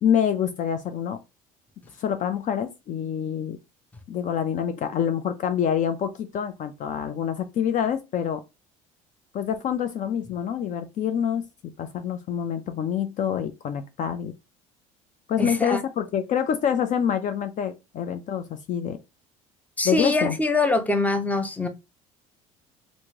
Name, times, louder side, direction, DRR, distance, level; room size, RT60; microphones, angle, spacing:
voice 1, 0.0-1.2 2.0-3.6 4.1-8.4 9.3-11.4 11.8-14.4 15.3-19.0 19.8-20.4, left 8 dB, 45° left, 0.5 m, -26 dB
voice 2, 15.4-15.8 19.8-21.7, left 2 dB, 10° left, 0.7 m, -23 dB
3.0 x 2.6 x 3.5 m
hypercardioid pair, 70°, 18 cm